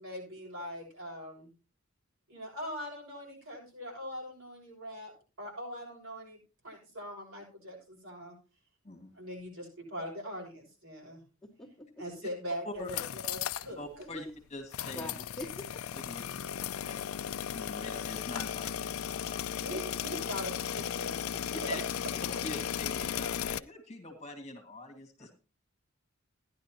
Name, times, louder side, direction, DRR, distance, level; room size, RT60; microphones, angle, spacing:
voice 1, 0.0-1.5 2.3-6.4 6.6-8.3 9.1-11.2 12.0-14.0 19.6-21.8, equal, 70° right, -2 dB, 6.8 m, -42 dB
voice 2, 11.4-11.9 14.9-15.1 15.4-15.8 21.5-21.6, left 1 dB, ahead, -4 dB, 2.3 m, -42 dB
voice 3, 12.7-13.0 13.8-15.1 15.9-16.6 16.9-19.5 20.2-20.3 21.5-21.8 22.4-25.3, left 2 dB, 30° left, 3 dB, 2.1 m, -44 dB
sound 1, 12.8-13.7 14.0-14.1 14.7-23.6, left 9 dB, 80° left, 0.5 m, -36 dB
15.5 x 10.5 x 3.0 m, 0.33 s
head